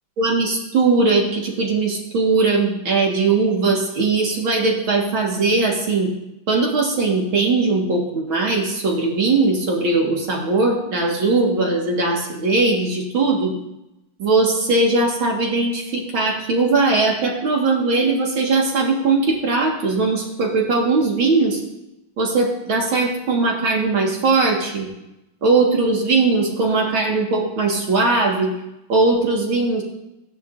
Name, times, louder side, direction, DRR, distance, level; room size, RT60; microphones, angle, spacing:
voice 1, 0.2-6.1 6.5-13.5 14.2-21.6 22.2-24.9 25.4-28.5 28.9-29.8, right 3 dB, 75° right, -1 dB, 2.4 m, -19 dB
16.5 x 10.5 x 2.6 m, 0.89 s
omnidirectional pair, 2.3 m